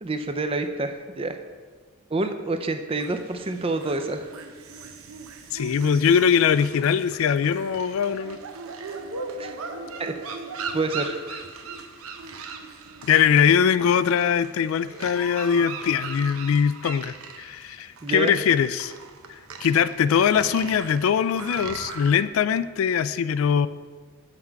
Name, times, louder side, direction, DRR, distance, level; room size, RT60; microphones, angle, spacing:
voice 1, 0.0-1.4 2.1-4.3 9.4-9.6 10.0-10.1 10.7-11.2 18.0-18.3, right 3 dB, 25° right, 7 dB, 0.5 m, -27 dB
sound 1, 2.9-22.2, right 4 dB, 90° right, 0.7 m, -39 dB
voice 2, 5.5-8.4 13.0-18.9 19.3-23.7, left 7 dB, 75° left, 15 dB, 0.3 m, -22 dB
7.7 x 5.9 x 4.6 m, 1.5 s
head